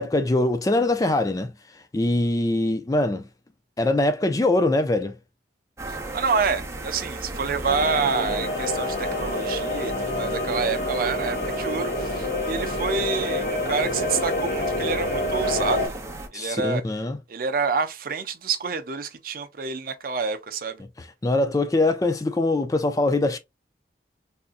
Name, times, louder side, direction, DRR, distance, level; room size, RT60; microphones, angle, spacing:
voice 1, 0.0-3.3 3.8-5.2 16.3-17.2 21.0-23.4, left 2 dB, 20° left, 0.3 m, -23 dB
sound 1, 5.8-16.3, right 2 dB, 15° right, 0.8 m, -36 dB
voice 2, 5.9-15.9 16.3-16.8 17.3-20.8, right 5 dB, 50° right, 0.5 m, -28 dB
sound 2, 7.7-15.9, left 1 dB, 65° left, 1.6 m, -27 dB
3.5 x 2.7 x 2.4 m
head